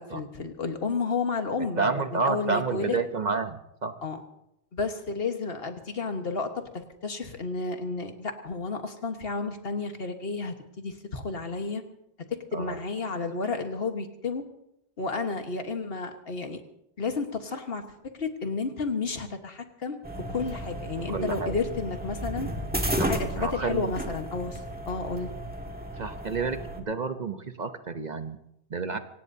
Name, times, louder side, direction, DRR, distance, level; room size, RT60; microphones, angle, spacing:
voice 1, 0.0-3.0 4.0-4.2 4.7-11.8 12.5-14.4 15.0-16.6 17.0-17.8 18.2-20.0 20.3-22.5 23.1-24.6 24.9-25.3, left 4 dB, 60° left, 6 dB, 1.6 m, -31 dB
voice 2, 1.8-3.9 12.5-12.8 21.1-21.6 23.0-23.1 23.4-23.9 26.0-28.4 28.7-29.0, right 4 dB, 45° right, 9 dB, 0.9 m, -30 dB
sound 1, 20.0-26.8, equal, 10° right, 1.6 m, -33 dB
25.0 x 18.0 x 2.8 m, 0.82 s
omnidirectional pair, 1.1 m